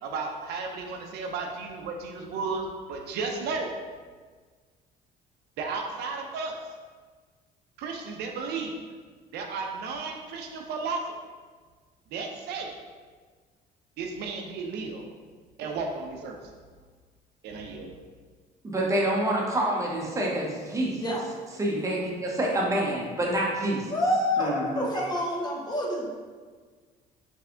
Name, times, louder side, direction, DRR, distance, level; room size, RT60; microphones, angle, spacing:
voice 1, 0.0-3.7 5.6-6.6 7.8-8.8 9.3-11.0 12.1-12.7 14.0-15.0 15.6-16.4 17.4-17.9, right 4 dB, 75° right, 2 dB, 0.5 m, -33 dB
voice 2, 18.6-21.2 21.6-24.0 24.4-25.1, right 1 dB, 20° right, -3 dB, 0.9 m, -27 dB
voice 3, 23.9-26.1, left 1 dB, 25° left, -3 dB, 0.9 m, -27 dB
3.5 x 3.3 x 3.6 m, 1.5 s
cardioid pair, 110°, 17 cm